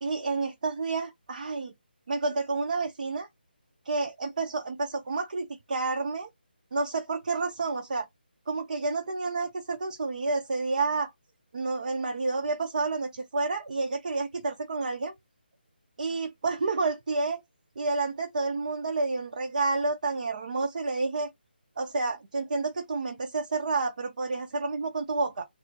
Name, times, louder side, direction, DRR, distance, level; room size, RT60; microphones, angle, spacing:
voice 1, 0.0-1.7 2.1-3.3 3.8-6.3 6.7-8.1 8.5-11.1 11.5-15.1 16.0-17.4 17.8-21.3 21.8-25.5, right 3 dB, 45° right, 0.6 m, -29 dB
4.1 x 2.0 x 4.2 m
figure-of-eight pair, 150°, 6 cm